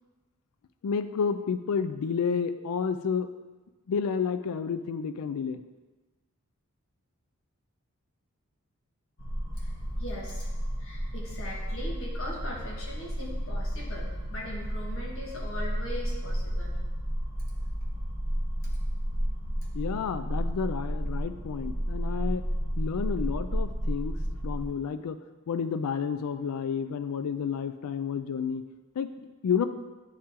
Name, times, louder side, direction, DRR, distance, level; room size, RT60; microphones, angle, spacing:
voice 1, 0.8-3.3 3.9-5.6 19.7-22.4 22.8-24.2 24.4-25.2 25.5-28.6 29.0-29.7, left 6 dB, 90° left, 11 dB, 0.4 m, -30 dB
sound 1, 9.2-24.7, equal, 50° left, 1.1 m, -32 dB
voice 2, 10.0-10.5 10.8-16.8, left 1 dB, 65° left, -3 dB, 1.6 m, -40 dB
8.7 x 4.3 x 3.7 m, 1.2 s
head